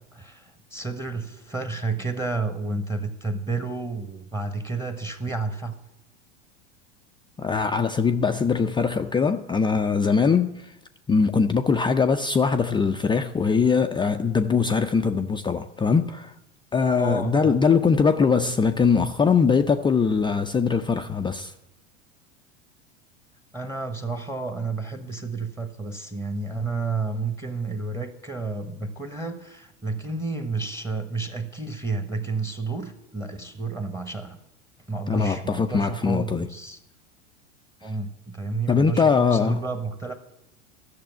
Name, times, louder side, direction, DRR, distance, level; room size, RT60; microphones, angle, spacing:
voice 1, 0.1-5.8 17.0-17.6 23.5-34.4 34.9-36.8 37.8-40.2, right 3 dB, 10° right, 1.2 m, -31 dB
voice 2, 7.4-10.7 11.1-16.3 16.7-21.5 35.1-36.5 38.7-39.6, left 5 dB, 15° left, 0.5 m, -22 dB
12.5 x 6.7 x 9.1 m
hypercardioid pair, 90°, 36 cm